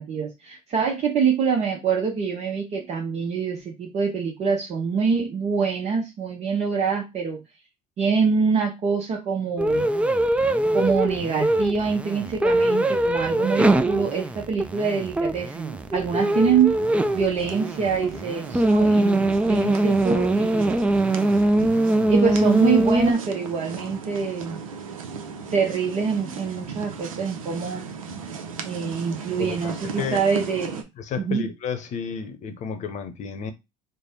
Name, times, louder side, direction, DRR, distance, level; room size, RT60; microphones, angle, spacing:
voice 1, 0.0-7.4 8.0-9.9 10.7-16.8 17.1-20.8 22.1-24.6 25.5-27.8 28.6-30.8 31.2-31.4, right 5 dB, 40° right, 0.8 m, -25 dB
sound 1, 9.6-23.1, right 1 dB, 5° right, 0.4 m, -22 dB
sound 2, 15.1-30.8, right 5 dB, 85° right, 0.6 m, -37 dB
voice 2, 31.0-33.5, left 6 dB, 45° left, 0.8 m, -31 dB
3.3 x 2.1 x 4.1 m
hypercardioid pair, 70°, 17 cm